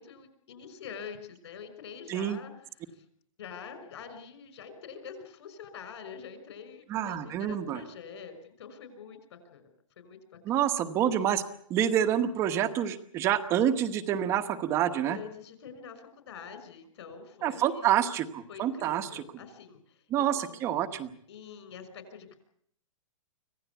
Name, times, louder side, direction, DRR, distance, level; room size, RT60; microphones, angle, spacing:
voice 1, 0.0-3.0 3.4-9.7 10.0-10.4 15.0-17.9 18.5-20.6 21.3-22.4, left 6 dB, 55° left, 10 dB, 5.5 m, -46 dB
voice 2, 6.9-7.8 10.4-11.4 11.7-15.2 17.4-19.2 20.1-21.1, right 10 dB, 15° right, 10 dB, 1.1 m, -27 dB
25.5 x 17.0 x 8.3 m, 0.66 s
hypercardioid pair, 175°, 17 cm